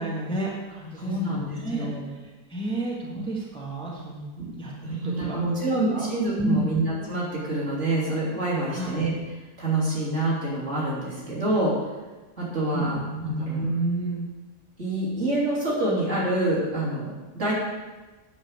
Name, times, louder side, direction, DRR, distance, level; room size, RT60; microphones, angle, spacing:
voice 1, 0.0-1.9 2.5-4.2 4.6-5.4 5.9-6.1 6.4-6.7 8.7-9.0 12.7-14.2, right 2 dB, 5° left, -4 dB, 1.5 m, -30 dB
voice 2, 1.0-2.1 4.4-4.5 4.8-9.1 9.6-11.8 12.4-13.6 14.8-17.5, right 2 dB, 45° right, -6 dB, 3.5 m, -27 dB
8.8 x 5.6 x 7.9 m, 1.2 s
omnidirectional pair, 1.7 m